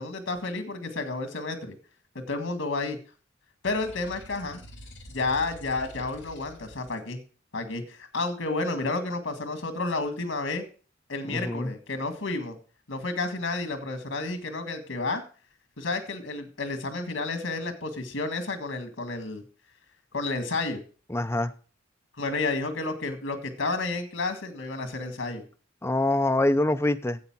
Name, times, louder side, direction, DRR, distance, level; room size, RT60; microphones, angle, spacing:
voice 1, 0.0-1.8 2.2-3.0 3.6-4.6 5.1-7.2 7.5-10.6 11.1-12.6 12.9-15.2 15.8-19.4 20.1-20.8 22.2-25.4, left 3 dB, 85° left, 1.8 m, -31 dB
sound 1, 3.6-7.0, equal, 70° left, 2.3 m, -47 dB
voice 2, 11.2-11.7 21.1-21.5 25.8-27.2, left 2 dB, 15° left, 0.6 m, -25 dB
9.5 x 8.1 x 5.9 m
head